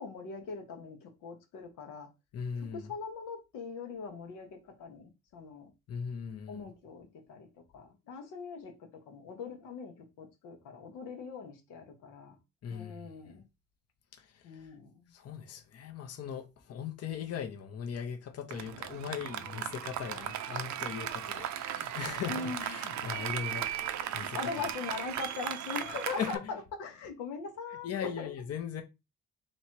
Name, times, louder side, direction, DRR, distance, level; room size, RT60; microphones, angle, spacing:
voice 1, 0.0-2.1 2.6-5.7 6.5-7.5 7.7-8.7 9.1-12.4 12.7-13.4 14.4-15.0 22.3-22.8 24.3-28.4, left 4 dB, 90° left, 1.0 m, -41 dB
voice 2, 2.3-2.9 5.9-6.7 12.6-13.1 14.2-14.3 14.5-14.7 15.1-23.7 24.1-24.4 26.2-26.4 27.8-28.8, left 7 dB, 55° left, 0.8 m, -39 dB
Applause, 18.5-26.4, right 10 dB, 70° right, 0.6 m, -37 dB
3.1 x 3.0 x 4.4 m
cardioid pair, 90°, 30 cm